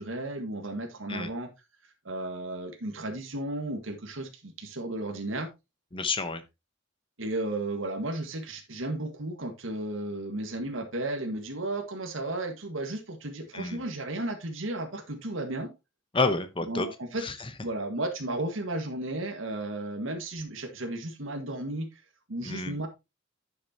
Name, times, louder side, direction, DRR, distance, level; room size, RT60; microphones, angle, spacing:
voice 1, 0.0-1.5 2.1-5.5 7.2-15.7 16.7-17.2 17.6-22.0 22.3-22.9, right 2 dB, 80° right, 1.7 m, -34 dB
voice 2, 5.9-6.4 13.5-13.8 16.1-16.9 17.2-17.5 22.4-22.8, left 3 dB, 25° left, 0.9 m, -29 dB
10.5 x 6.5 x 2.9 m
head